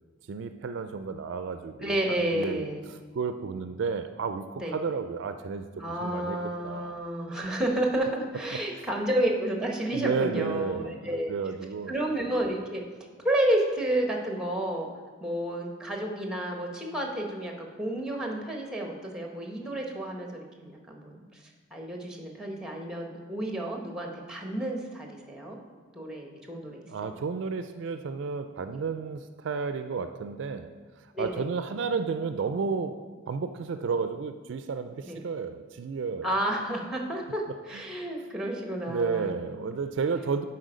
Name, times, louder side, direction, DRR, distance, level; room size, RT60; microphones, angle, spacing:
voice 1, 0.3-2.0 2.3-5.7 6.0-6.4 6.6-7.0 8.5-8.8 9.9-11.9 26.9-30.7 31.2-36.3 37.7-37.8 38.9-40.4, right 5 dB, 60° right, 9 dB, 0.3 m, -32 dB
voice 2, 1.8-2.8 4.5-4.8 5.8-11.3 11.9-12.8 13.2-14.9 15.2-21.4 21.7-25.6 25.9-27.2 31.1-31.5 35.0-35.2 36.2-39.3, right 1 dB, 5° right, 2 dB, 0.9 m, -31 dB
10.5 x 4.3 x 5.0 m, 1.5 s
head